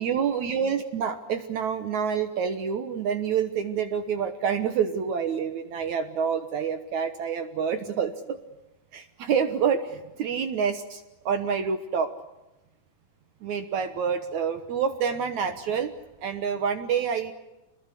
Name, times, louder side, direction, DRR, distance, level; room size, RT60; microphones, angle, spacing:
voice 1, 0.0-8.4 8.9-12.1 13.4-15.9 16.2-17.3, right 7 dB, 65° right, 8 dB, 2.1 m, -27 dB
27.0 x 21.0 x 8.4 m, 0.98 s
omnidirectional pair, 4.4 m